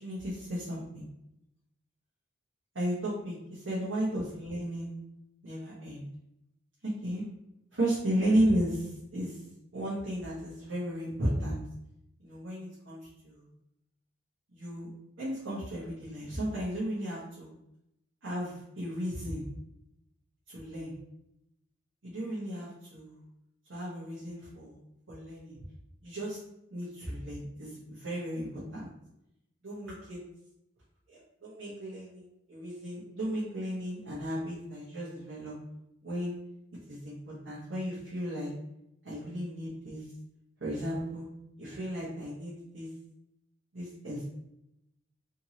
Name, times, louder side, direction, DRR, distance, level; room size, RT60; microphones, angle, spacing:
voice 1, 0.0-1.0 2.7-4.9 5.4-6.1 6.8-7.2 7.7-9.4 9.7-11.6 12.2-13.0 13.2-13.5 14.5-14.9 15.2-17.5 18.2-19.4 20.5-20.9 22.0-23.2 23.7-24.8 25.1-25.6 26.0-26.4 26.7-28.9 29.6-30.2 31.1-35.5 36.0-36.4 36.9-37.1 37.4-38.5 39.0-40.0 40.6-41.3 41.6-42.9 43.7-44.2, equal, 75° right, -9 dB, 1.2 m, -34 dB
3.6 x 2.9 x 2.9 m, 0.84 s
head